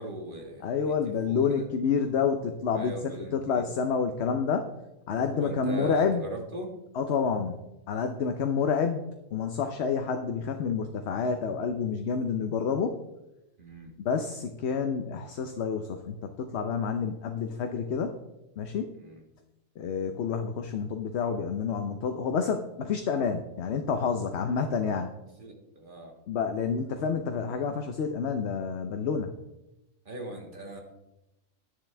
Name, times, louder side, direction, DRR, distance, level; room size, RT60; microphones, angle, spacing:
voice 1, 0.0-1.6 2.7-3.6 5.3-6.7 13.6-13.9 19.0-19.2 25.4-26.1 30.0-30.8, right 1 dB, 40° right, 1 dB, 1.8 m, -40 dB
voice 2, 0.6-3.0 3.3-4.7 5.1-6.2 6.9-9.0 9.3-13.0 14.0-18.1 18.6-18.9 19.8-25.1 26.3-29.3, left 6 dB, 60° left, 6 dB, 0.9 m, -29 dB
11.0 x 10.5 x 3.4 m, 0.93 s
omnidirectional pair, 1.4 m